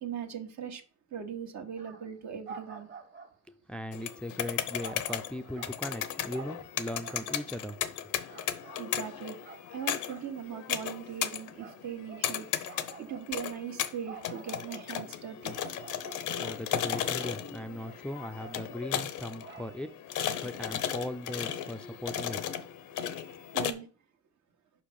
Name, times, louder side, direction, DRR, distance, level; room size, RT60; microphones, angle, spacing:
voice 1, 0.0-0.8 1.1-2.9 8.8-9.4 9.7-12.5 13.0-15.6 23.5-23.9, right 8 dB, 65° right, 1.3 m, -39 dB
sound 1, 1.8-2.2 2.5-3.4 4.8-6.0 6.3-7.5 7.9-9.1 9.4-9.7 10.0-10.3 10.7-11.2 11.6-12.3 12.7-15.2 15.5-16.6 17.2-17.5 17.8-18.1 18.4-19.9 20.1-20.3, right 5 dB, 40° right, 1.3 m, -49 dB
voice 2, 3.7-8.1 16.4-19.9 20.4-22.4, left 1 dB, 5° left, 0.4 m, -38 dB
sound 2, 3.9-23.7, left 10 dB, 80° left, 0.8 m, -36 dB
5.5 x 5.0 x 5.3 m
cardioid pair, 90°, 30 cm